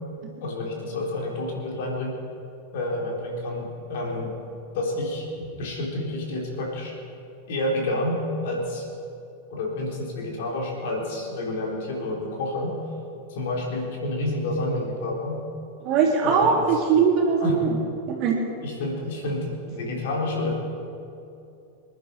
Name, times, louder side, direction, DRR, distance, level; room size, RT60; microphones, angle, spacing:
voice 1, 0.4-2.2 2.7-4.3 4.7-6.9 7.5-8.8 9.5-12.8 13.3-15.4 16.2-16.6 17.4-17.7 18.6-20.5, left 1 dB, 55° left, -2 dB, 4.0 m, -29 dB
voice 2, 15.8-17.7 18.1-18.4, right 6 dB, 40° right, -1 dB, 3.4 m, -21 dB
26.5 x 11.0 x 4.8 m, 2.7 s
figure-of-eight pair, 90°, 0 cm